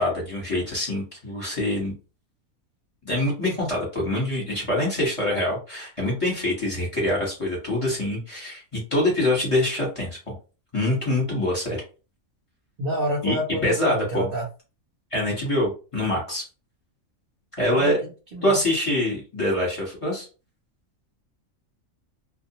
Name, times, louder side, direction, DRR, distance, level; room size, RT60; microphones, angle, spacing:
voice 1, 0.0-1.9 3.0-10.3 10.7-11.8 13.2-13.3 13.6-14.3 15.1-16.4 17.6-18.0 18.4-20.3, left 1 dB, 25° left, -4 dB, 1.1 m, -25 dB
voice 2, 12.8-14.4 17.7-18.6, equal, 50° right, -2 dB, 0.8 m, -29 dB
2.3 x 2.2 x 2.9 m, 0.33 s
omnidirectional pair, 1.4 m